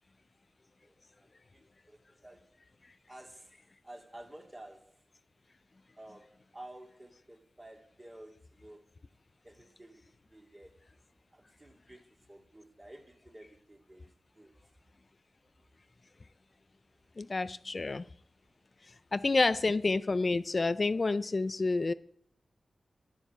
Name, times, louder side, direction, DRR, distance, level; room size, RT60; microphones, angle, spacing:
voice 1, 0.8-2.6 3.1-3.6 3.8-5.0 6.0-8.9 9.4-10.8 11.3-14.5, right 1 dB, 25° right, 2.5 m, -53 dB
voice 2, 17.2-18.0 19.1-21.9, left 3 dB, 45° left, 0.4 m, -29 dB
10.5 x 7.2 x 8.0 m
cardioid pair, 60°, 0 cm